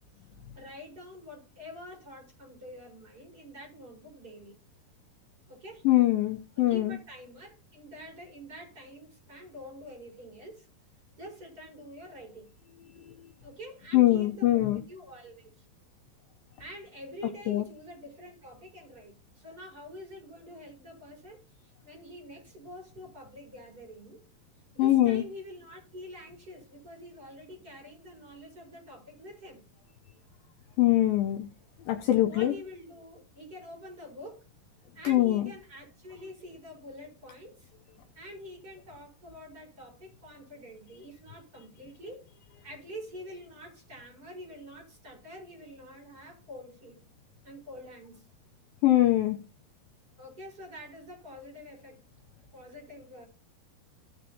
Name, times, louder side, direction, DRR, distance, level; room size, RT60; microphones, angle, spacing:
voice 1, 0.5-4.6 5.5-5.8 6.7-10.7 11.2-12.5 13.4-15.6 16.6-24.2 24.7-29.6 32.2-34.5 34.9-37.7 38.1-42.3 42.6-47.0 47.4-48.3 50.2-52.0 52.5-53.2, equal, 20° right, -1 dB, 4.9 m, -46 dB
voice 2, 5.8-7.0 13.9-14.8 17.5-17.6 24.8-25.2 30.8-31.5 31.8-32.5 35.0-35.4 48.8-49.4, left 15 dB, 75° left, 3 dB, 2.3 m, -23 dB
15.5 x 6.3 x 2.8 m, 0.31 s
omnidirectional pair, 4.7 m